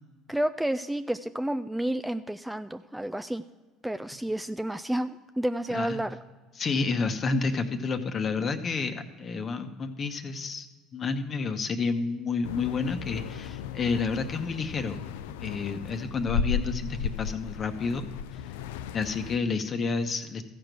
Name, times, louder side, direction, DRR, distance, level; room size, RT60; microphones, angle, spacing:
voice 1, 0.3-3.4 3.8-6.2, right 1 dB, 5° right, 9 dB, 0.3 m, -30 dB
voice 2, 6.6-10.7 10.9-15.0 15.4-18.1 18.9-20.4, left 4 dB, 40° left, 8 dB, 1.0 m, -30 dB
sound 1, 12.4-19.4, left 7 dB, 85° left, 0.3 m, -35 dB
14.0 x 5.2 x 6.1 m, 1.4 s
supercardioid pair, 80°, 0 cm